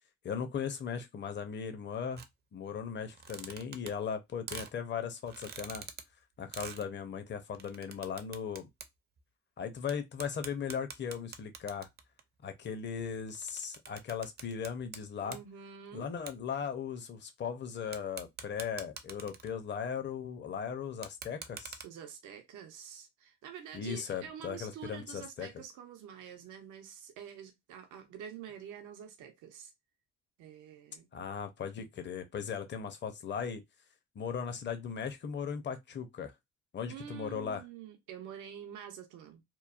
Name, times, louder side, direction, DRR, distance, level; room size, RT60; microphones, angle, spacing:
voice 1, 0.2-2.2 2.5-5.8 6.4-8.7 9.6-11.9 12.4-15.4 15.9-21.8 23.7-25.5 31.1-33.6 34.2-36.3 36.7-37.6, left 7 dB, 35° left, 0.6 m, -38 dB
sound 1, 2.2-2.3 3.1-4.1 4.5-4.7 5.3-6.0 6.5-6.8 7.5-8.9 9.2-9.3 9.9-10.0 10.2-12.2 12.9-15.0 15.2-15.5 16.3-16.4 17.9-19.6 20.9-21.8, right 6 dB, 35° right, 0.4 m, -45 dB
voice 2, 15.2-16.1 21.8-29.7 30.4-31.1 36.9-39.4, right 8 dB, 90° right, 0.6 m, -47 dB
3.0 x 2.0 x 2.4 m
cardioid pair, 90°, 30 cm